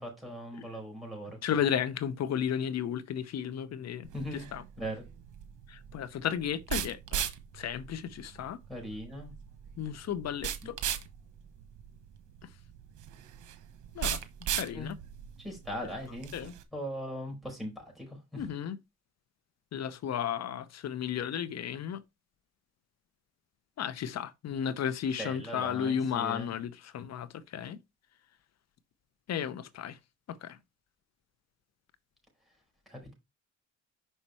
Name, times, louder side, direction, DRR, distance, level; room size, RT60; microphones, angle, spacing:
voice 1, 0.0-1.4 4.1-4.5 4.8-5.0 8.7-9.3 14.7-14.9 15.4-16.3 16.7-18.4 25.2-26.5 32.9-33.1, equal, ahead, 4.9 m, -39 dB
voice 2, 1.4-4.6 5.7-7.3 7.5-8.6 9.8-10.8 13.9-14.2 14.5-14.9 16.3-16.6 18.4-18.8 19.7-22.0 23.8-27.8 29.3-30.0 30.3-30.6, left 8 dB, 60° left, 0.8 m, -34 dB
sound 1, 4.0-16.6, right 10 dB, 80° right, 1.1 m, -38 dB
5.8 x 5.6 x 4.3 m
cardioid pair, 90°, 30 cm